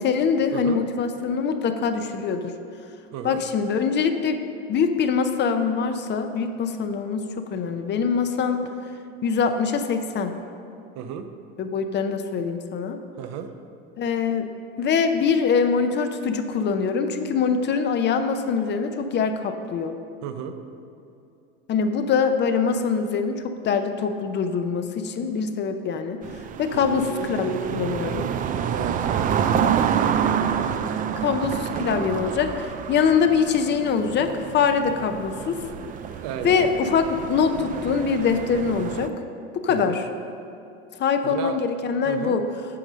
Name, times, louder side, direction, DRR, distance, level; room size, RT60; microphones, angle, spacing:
voice 1, 0.0-2.4 3.2-4.4 4.7-8.7 9.2-10.3 11.6-13.0 14.0-14.5 14.8-19.9 21.7-26.2 26.6-28.3 29.5-29.9 31.2-35.6 36.4-39.1 39.5-40.0 41.0-42.4, left 6 dB, 35° left, 7 dB, 0.6 m, -23 dB
voice 2, 3.1-3.4 10.9-11.3 13.2-13.5 20.2-20.5 26.7-27.0 28.7-29.8 36.2-36.7 39.7-40.0 41.2-41.6 42.0-42.3, right 8 dB, 60° right, 8 dB, 0.8 m, -33 dB
sound 1, 26.2-39.1, right 8 dB, 25° right, 0.3 m, -28 dB
8.5 x 5.3 x 6.2 m, 2.7 s
supercardioid pair, 115°, 32 cm